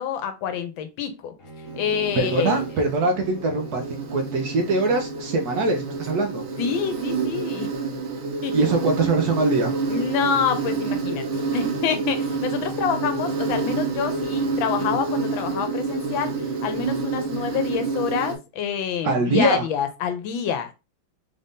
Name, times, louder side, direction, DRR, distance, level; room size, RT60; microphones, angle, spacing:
voice 1, 0.0-1.3 1.7-2.6 6.6-7.7 8.4-8.6 9.9-11.3 11.5-20.7, left 7 dB, 85° left, 1.4 m, -27 dB
Bowed string instrument, 1.4-6.1, right 2 dB, 50° left, 1.2 m, -42 dB
Insect, 1.7-18.3, right 4 dB, 90° right, 1.7 m, -28 dB
voice 2, 2.2-6.4 8.5-9.8 19.0-19.6, right 2 dB, 65° right, 1.1 m, -22 dB
4.0 x 2.6 x 3.5 m
omnidirectional pair, 2.2 m